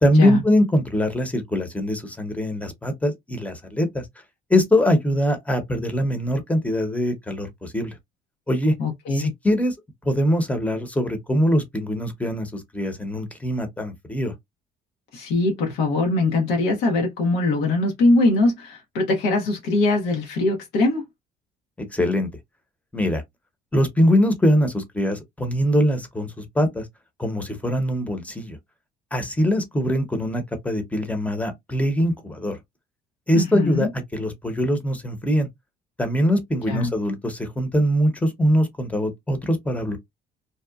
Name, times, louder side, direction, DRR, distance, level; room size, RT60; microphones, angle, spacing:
voice 1, 0.0-4.0 4.5-7.9 8.5-8.7 9.1-9.7 10.0-14.3 21.8-22.3 22.9-23.2 23.7-26.8 27.2-28.6 29.1-32.6 33.3-35.5 36.0-40.0, equal, 10° left, 0.8 m, -22 dB
voice 2, 8.8-9.3 15.1-21.0 33.3-33.9 36.7-36.9, left 2 dB, 90° left, 0.8 m, -22 dB
2.8 x 2.1 x 2.3 m
cardioid pair, 110°, 17 cm